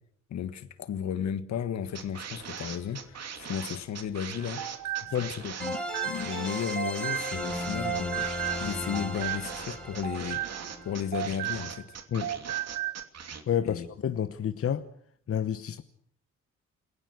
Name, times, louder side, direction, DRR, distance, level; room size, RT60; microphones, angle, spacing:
voice 1, 0.3-4.9 5.2-10.4 10.8-12.0 13.6-13.9, left 8 dB, 65° left, 1.7 m, -34 dB
sound 1, 1.9-13.4, right 7 dB, 55° right, 2.9 m, -41 dB
sound 2, 2.8-2.9 5.6-11.5, left 1 dB, 5° left, 4.2 m, -36 dB
sound 3, 4.3-7.6 7.8-11.9 12.2-13.0, right 13 dB, 80° right, 1.3 m, -35 dB
voice 2, 13.5-14.9 15.3-15.8, left 9 dB, 50° left, 1.1 m, -29 dB
28.0 x 17.0 x 6.5 m
cardioid pair, 90°, 30 cm